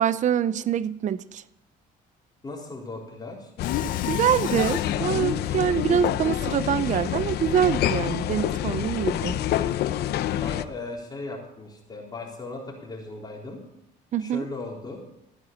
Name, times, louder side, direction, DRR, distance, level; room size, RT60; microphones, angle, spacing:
voice 1, 0.0-1.4 4.1-9.4 14.1-14.4, right 9 dB, 45° right, 16 dB, 0.7 m, -25 dB
voice 2, 2.4-3.5 10.4-13.6 14.2-15.0, left 3 dB, 25° left, -2 dB, 3.9 m, -37 dB
sound 1, 3.6-10.6, left 11 dB, 75° left, 0.8 m, -27 dB
Mechanisms, 3.6-5.1, left 14 dB, 55° left, 0.5 m, -36 dB
15.5 x 9.4 x 8.7 m, 0.83 s
cardioid pair, 110°, 17 cm